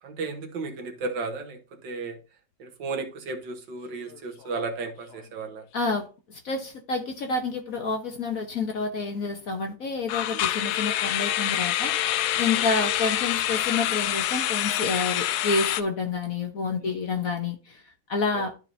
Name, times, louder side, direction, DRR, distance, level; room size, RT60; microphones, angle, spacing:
voice 1, 0.0-2.2 2.6-5.7 16.7-17.0 18.3-18.4, right 3 dB, 65° right, 1.8 m, -34 dB
sound 1, 3.9-4.2 4.4-4.6 5.1-5.2 10.1-15.8, left 12 dB, 80° left, 0.8 m, -26 dB
voice 2, 5.7-17.8 18.1-18.5, left 4 dB, 55° left, 1.1 m, -29 dB
12.5 x 4.6 x 2.7 m
omnidirectional pair, 2.2 m